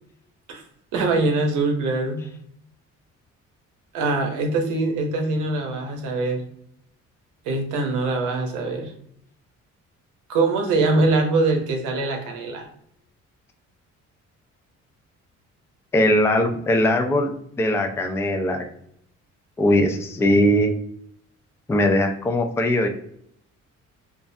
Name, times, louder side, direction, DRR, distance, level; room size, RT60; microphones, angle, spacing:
voice 1, 0.9-2.2 3.9-6.4 7.4-8.9 10.3-12.7, right 3 dB, 90° right, 3 dB, 0.7 m, -23 dB
voice 2, 15.9-18.6 19.6-20.7 21.7-22.9, left 1 dB, 10° left, 4 dB, 0.3 m, -20 dB
2.4 x 2.1 x 2.5 m, 0.69 s
cardioid pair, 90°, 30 cm